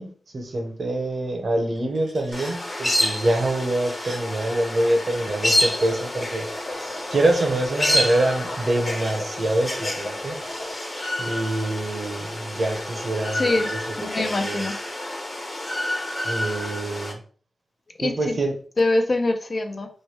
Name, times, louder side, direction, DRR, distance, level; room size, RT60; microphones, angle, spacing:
voice 1, 0.0-10.4 11.2-14.7 16.2-17.2 18.0-18.6, right 1 dB, 55° right, 4 dB, 0.8 m, -25 dB
sound 1, 1.8-2.6 3.6-4.2 6.9-7.5 8.4-9.2 10.2-11.1 12.0-12.8 13.7-14.6, right 1 dB, 80° right, 1.1 m, -45 dB
sound 2, 2.3-17.1, left 1 dB, 30° left, 0.8 m, -28 dB
sound 3, 5.2-10.7, left 1 dB, 75° left, 1.2 m, -37 dB
voice 2, 13.4-14.8 18.0-18.4 18.8-19.9, left 2 dB, 50° left, 5 dB, 0.5 m, -24 dB
3.1 x 2.1 x 3.2 m, 0.43 s
cardioid pair, 60°, 0 cm